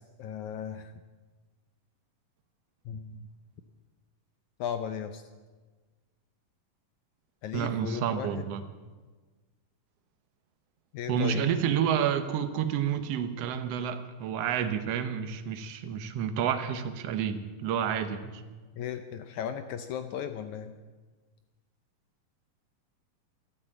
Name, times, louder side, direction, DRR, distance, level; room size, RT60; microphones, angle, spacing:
voice 1, 0.2-0.9 2.9-3.2 4.6-5.2 7.4-8.4 10.9-11.5 18.8-20.7, left 8 dB, 75° left, 8 dB, 1.8 m, -36 dB
voice 2, 7.5-8.6 11.1-18.4, right 8 dB, 70° right, 9 dB, 1.5 m, -29 dB
12.5 x 12.5 x 8.8 m, 1.3 s
omnidirectional pair, 4.0 m